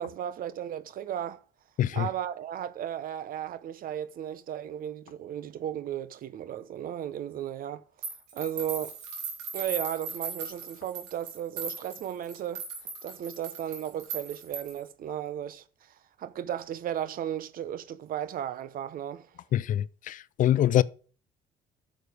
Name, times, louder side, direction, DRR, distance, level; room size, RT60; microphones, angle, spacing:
voice 1, 0.0-1.4 1.9-7.8 8.3-9.0 9.5-12.6 13.0-19.3, right 10 dB, 60° right, 0.8 m, -35 dB
sound 1, 8.0-14.9, right 5 dB, 85° right, 3.4 m, -38 dB
voice 2, 19.5-20.8, left 12 dB, 50° left, 0.4 m, -24 dB
9.2 x 6.6 x 5.1 m
cardioid pair, 110°, 17 cm